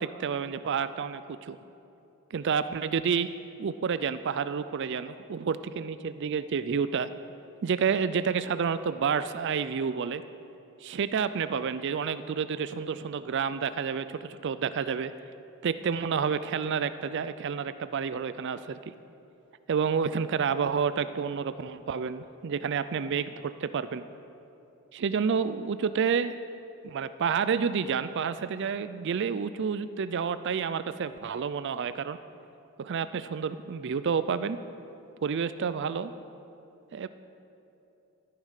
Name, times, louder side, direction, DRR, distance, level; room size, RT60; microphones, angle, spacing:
voice 1, 0.0-1.6 2.3-3.3 3.6-7.1 7.6-10.2 10.8-15.1 15.6-18.8 19.7-24.0 24.9-26.3 26.8-32.2 32.8-34.6 35.2-36.1 36.9-37.1, right 6 dB, 55° right, 13 dB, 0.4 m, -29 dB
13.0 x 10.5 x 6.5 m, 2.9 s
head